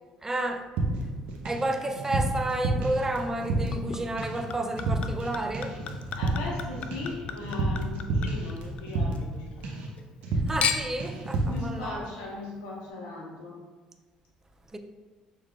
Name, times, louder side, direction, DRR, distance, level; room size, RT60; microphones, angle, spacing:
voice 1, 0.2-0.7 1.4-5.8 10.5-12.0 14.7-14.8, right 1 dB, 20° right, 0.5 m, -31 dB
sound 1, 0.8-1.7 2.0-3.9 4.2-4.5 4.8-5.3 5.5-9.4 9.6-9.9 10.2-10.7 11.0-11.6, right 2 dB, 75° right, 0.8 m, -29 dB
Chink clink / Liquid, 3.7-9.2 9.6-10.2 10.6-11.1 11.9-12.0, left 6 dB, 55° left, 0.4 m, -35 dB
voice 2, 6.1-9.8 10.3-10.4 11.4-13.6, left 2 dB, 85° left, 1.0 m, -38 dB
6.3 x 3.5 x 2.3 m
supercardioid pair, 75°, 2 cm